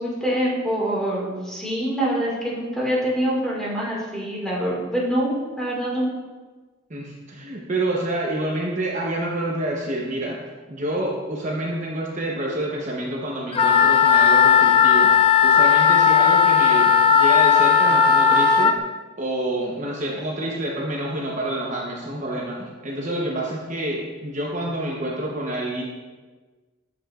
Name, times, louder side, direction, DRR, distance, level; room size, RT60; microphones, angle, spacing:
voice 1, 0.0-6.1, equal, 5° left, -5 dB, 2.0 m, -25 dB
voice 2, 6.9-10.4 10.7-15.1 15.4-18.7 19.2-25.8, right 1 dB, 40° right, -2 dB, 0.9 m, -28 dB
Wind instrument woodwind instrument, 13.5-18.7, left 7 dB, 30° left, 0.3 m, -16 dB
8.3 x 7.7 x 2.5 m, 1.3 s
head